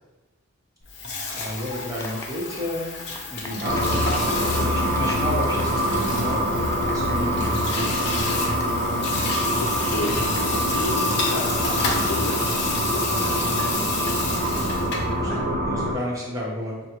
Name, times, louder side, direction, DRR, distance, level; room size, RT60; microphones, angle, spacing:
Water tap faucet / Sink (filling or washing), 0.8-15.1, left 3 dB, 55° left, 0.8 m, -31 dB
sound 1, 1.1-4.0 4.3-4.5 4.8-10.8 11.1-11.3, left 2 dB, 15° left, 0.3 m, -42 dB
voice 1, 1.3-3.0 3.3-4.2 4.6-8.1 12.6-12.9 13.5-13.9 14.8-16.9, left 1 dB, 15° right, -4 dB, 0.9 m, -32 dB
voice 2, 3.5-3.8 4.1-4.8 9.2-12.6 12.9-13.5 15.3-15.4, left 1 dB, 80° left, -3 dB, 0.6 m, -33 dB
sound 2, 3.6-15.9, equal, 45° right, 0.6 m, -24 dB
6.1 x 2.2 x 3.0 m, 1.1 s
head